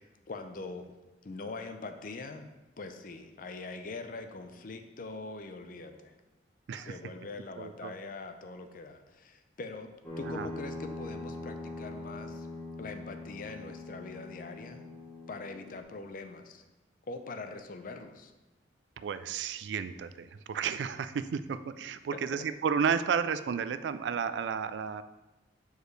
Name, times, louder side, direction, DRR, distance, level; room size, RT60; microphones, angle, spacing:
voice 1, 0.3-0.9 1.2-2.5 2.8-6.1 6.7-12.5 12.8-14.9 15.3-16.6 17.1-18.3, left 3 dB, 50° left, 7 dB, 0.5 m, -43 dB
voice 2, 7.6-7.9 10.2-10.5 19.0-25.0, right 6 dB, 75° right, 13 dB, 0.3 m, -32 dB
sound 1, 10.0-15.8, left 2 dB, 10° left, 1.5 m, -42 dB
6.7 x 4.8 x 3.2 m, 1.1 s
head